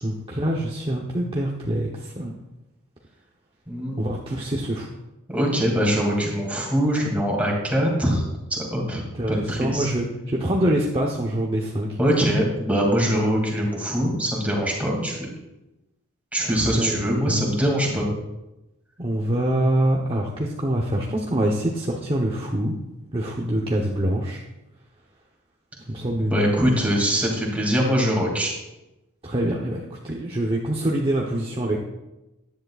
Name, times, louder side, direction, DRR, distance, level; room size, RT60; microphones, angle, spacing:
voice 1, 0.0-2.3 4.0-4.9 9.2-11.9 16.5-17.0 17.3-17.6 19.0-22.7 23.1-24.4 25.9-26.7 29.2-31.8, right 1 dB, 25° right, -2 dB, 0.9 m, -25 dB
voice 2, 5.3-8.2 8.5-9.9 12.0-15.3 16.3-18.1 26.2-28.5, equal, 5° right, -2 dB, 2.4 m, -23 dB
14.5 x 10.5 x 2.4 m, 0.97 s
head